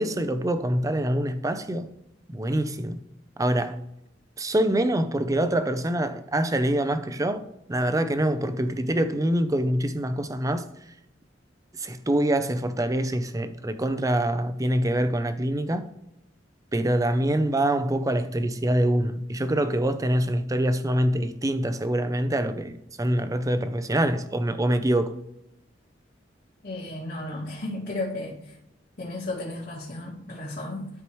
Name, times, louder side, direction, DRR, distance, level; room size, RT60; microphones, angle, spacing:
voice 1, 0.0-1.9 2.3-3.0 3.4-3.8 4.4-7.4 7.7-10.6 11.8-15.9 16.7-25.1, right 1 dB, 20° right, 0.5 m, -25 dB
voice 2, 26.6-28.6 29.0-30.9, left 2 dB, 50° left, 2.3 m, -34 dB
12.5 x 4.7 x 3.1 m
head